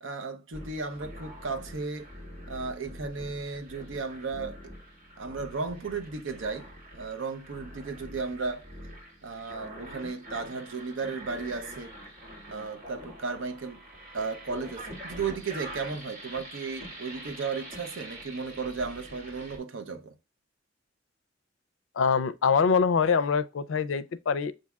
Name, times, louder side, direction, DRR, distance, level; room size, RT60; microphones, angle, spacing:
voice 1, 0.0-2.1 2.5-4.6 5.2-8.7 9.2-11.9 12.5-13.8 14.1-20.2, right 4 dB, 75° right, 0.6 m, -35 dB
sound 1, 0.5-19.6, right 1 dB, 40° right, 1.8 m, -45 dB
voice 2, 22.0-24.5, left 5 dB, 80° left, 0.4 m, -24 dB
7.0 x 2.7 x 2.3 m
head